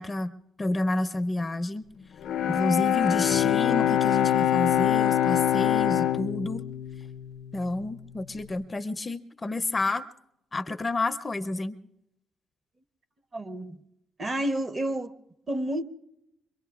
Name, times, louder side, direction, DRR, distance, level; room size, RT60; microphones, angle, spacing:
voice 1, 0.0-1.9 2.5-6.6 7.5-10.0 10.5-11.8, left 2 dB, 25° left, 10 dB, 0.5 m, -30 dB
Bowed string instrument, 2.2-8.2, left 11 dB, 75° left, 0.5 m, -25 dB
voice 2, 13.3-13.8 14.2-15.1 15.5-15.8, right 1 dB, 35° right, 9 dB, 1.0 m, -30 dB
25.5 x 23.5 x 2.4 m, 0.85 s
cardioid pair, 90°, 0 cm